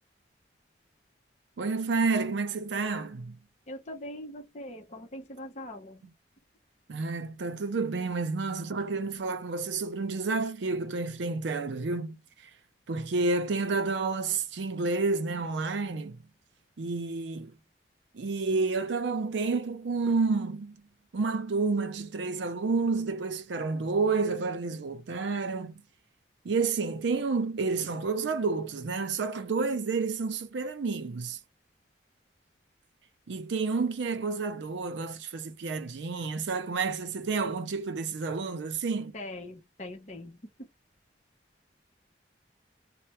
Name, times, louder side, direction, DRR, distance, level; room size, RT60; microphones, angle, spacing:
voice 1, 1.6-3.4 6.9-12.2 12.9-16.2 16.8-17.5 18.1-20.8 21.1-25.7 26.4-31.4 33.3-39.1, right 4 dB, 80° right, 0.5 m, -30 dB
voice 2, 3.7-6.1 39.1-40.5, left 1 dB, 40° left, 0.7 m, -42 dB
3.2 x 2.1 x 2.9 m
head